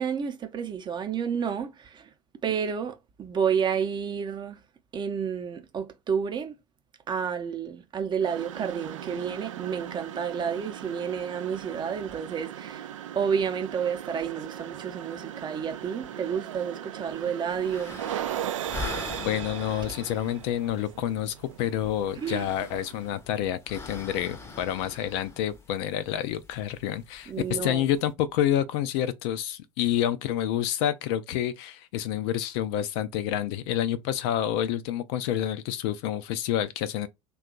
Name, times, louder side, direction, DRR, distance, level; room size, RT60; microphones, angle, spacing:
voice 1, 0.0-2.1 2.4-4.6 4.9-6.5 7.1-18.0 22.2-22.5 27.3-27.9, right 7 dB, 25° right, 0.7 m, -30 dB
sound 1, 8.2-23.1, right 11 dB, 70° right, 0.4 m, -38 dB
sound 2, 17.5-28.1, left 4 dB, 15° left, 0.7 m, -43 dB
voice 2, 19.2-37.1, left 11 dB, 50° left, 0.4 m, -28 dB
2.8 x 2.3 x 3.8 m
figure-of-eight pair, 75°, 17 cm